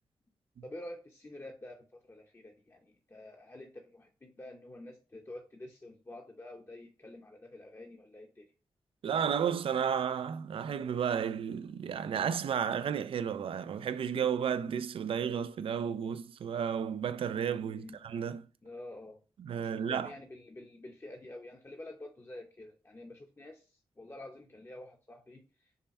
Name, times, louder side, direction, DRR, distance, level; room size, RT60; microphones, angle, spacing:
voice 1, 0.6-8.5 17.8-18.0 18.6-19.2 19.6-25.4, left 1 dB, 25° left, 0.7 m, -48 dB
voice 2, 9.0-18.4 19.4-20.1, right 8 dB, 75° right, 0.4 m, -32 dB
5.5 x 2.2 x 4.1 m
cardioid pair, 60°, 9 cm